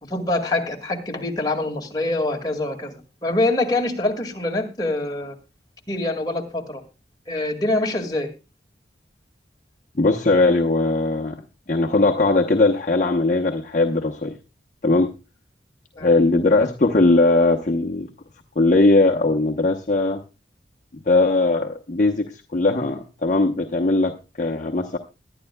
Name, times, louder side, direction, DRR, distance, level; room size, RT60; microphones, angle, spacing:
voice 1, 0.0-5.4 5.9-6.8 7.3-8.3 16.0-16.2, left 2 dB, 25° left, 0 dB, 1.9 m, -25 dB
voice 2, 10.0-11.4 11.7-14.4 14.8-15.1 16.0-18.1 18.6-20.2 21.1-25.0, left 2 dB, 45° left, 1 dB, 0.9 m, -19 dB
21.0 x 11.0 x 2.2 m, 0.28 s
head